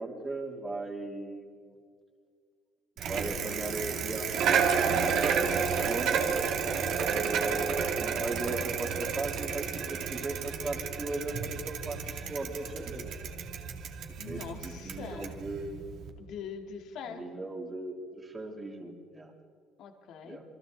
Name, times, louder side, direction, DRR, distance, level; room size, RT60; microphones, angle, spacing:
voice 1, 0.0-1.8 3.1-6.4 7.1-13.1 14.2-16.0 17.1-19.3 20.2-20.4, right 2 dB, 20° right, 1 dB, 2.9 m, -38 dB
Bicycle, 3.0-16.1, right 6 dB, 55° right, 2.3 m, -31 dB
voice 2, 14.2-15.4 16.2-17.2 19.8-20.4, left 7 dB, 55° left, 5 dB, 2.0 m, -43 dB
28.0 x 23.5 x 4.0 m, 2.1 s
cardioid pair, 145°, 0 cm